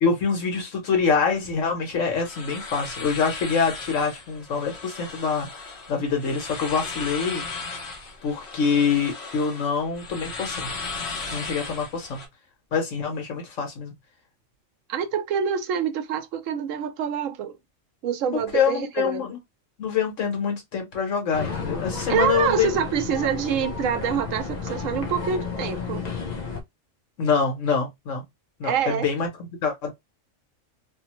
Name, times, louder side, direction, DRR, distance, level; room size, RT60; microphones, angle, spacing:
voice 1, 0.0-7.5 8.2-10.8 11.3-12.2 12.7-13.9 18.3-19.4 19.8-22.7 27.2-28.2 28.6-29.3 29.6-29.9, left 5 dB, 80° left, 1.5 m, -25 dB
sound 1, 2.0-12.3, left 4 dB, 60° left, 1.2 m, -36 dB
voice 2, 14.9-17.6 18.0-19.3 22.1-26.0 28.6-29.1, right 7 dB, 90° right, 1.0 m, -26 dB
sound 2, 21.3-26.6, left 5 dB, 45° left, 0.6 m, -32 dB
3.1 x 2.1 x 2.9 m
omnidirectional pair, 1.3 m